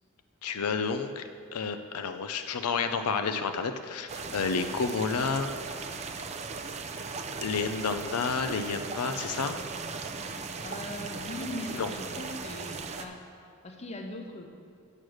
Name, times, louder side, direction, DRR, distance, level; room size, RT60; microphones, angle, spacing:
voice 1, 0.4-1.2 1.5-5.6 7.4-9.5 11.7-11.9, left 5 dB, 90° left, 8 dB, 0.5 m, -30 dB
sound 1, 4.1-13.1, right 4 dB, 30° right, 0.5 m, -38 dB
voice 2, 10.2-14.5, left 1 dB, 30° left, 3 dB, 0.8 m, -41 dB
8.6 x 6.4 x 6.3 m, 2.2 s
head